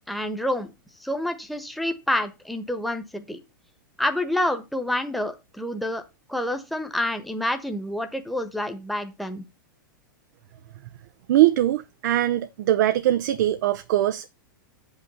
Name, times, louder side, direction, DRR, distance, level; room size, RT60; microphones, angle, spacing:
voice 1, 0.1-0.7 1.0-3.4 4.0-6.0 6.3-9.4, left 1 dB, ahead, 1.3 m, -28 dB
voice 2, 11.3-14.3, right 13 dB, 65° right, 0.7 m, -21 dB
8.3 x 5.7 x 5.5 m
hypercardioid pair, 115°, 11 cm